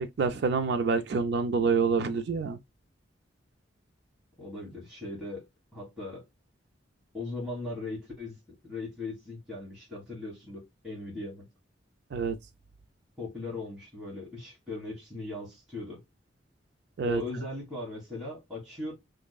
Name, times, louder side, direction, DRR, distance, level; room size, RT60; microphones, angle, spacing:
voice 1, 0.0-2.6 12.1-12.4 17.0-17.2, right 5 dB, 65° right, 0.4 m, -27 dB
voice 2, 4.4-5.4 5.7-6.2 7.1-8.4 8.6-11.5 13.2-16.0 17.0-18.9, left 2 dB, 5° right, 1.6 m, -38 dB
3.6 x 3.1 x 2.2 m
head